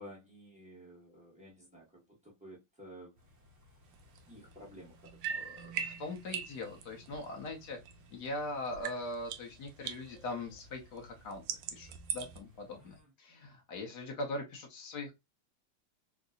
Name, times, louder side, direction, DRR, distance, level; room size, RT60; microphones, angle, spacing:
voice 1, 0.0-3.2 4.3-5.8 6.3-6.4 12.8-13.1, equal, 5° right, -3 dB, 0.8 m, -53 dB
sound 1, 3.2-13.0, equal, 45° right, 1.2 m, -62 dB
sound 2, 3.9-8.4 8.7-12.4, right 7 dB, 75° right, 1.0 m, -42 dB
voice 2, 5.7-7.8 8.1-11.4 11.7-15.1, left 2 dB, 60° left, 1 dB, 1.1 m, -41 dB
3.7 x 2.6 x 2.3 m, 0.21 s
omnidirectional pair, 2.3 m